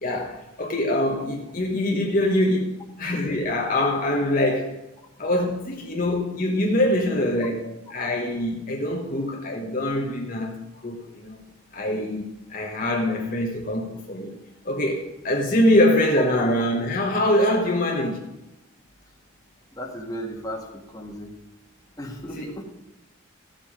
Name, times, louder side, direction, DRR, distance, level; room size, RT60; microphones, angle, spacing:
voice 1, 0.0-4.8 5.2-11.4 11.7-14.4 14.6-18.2 22.4-22.5, left 1 dB, 40° left, 0 dB, 1.3 m, -24 dB
voice 2, 19.7-21.3 22.0-22.6, equal, 15° left, 0 dB, 1.6 m, -35 dB
16.0 x 7.5 x 5.1 m, 0.92 s
head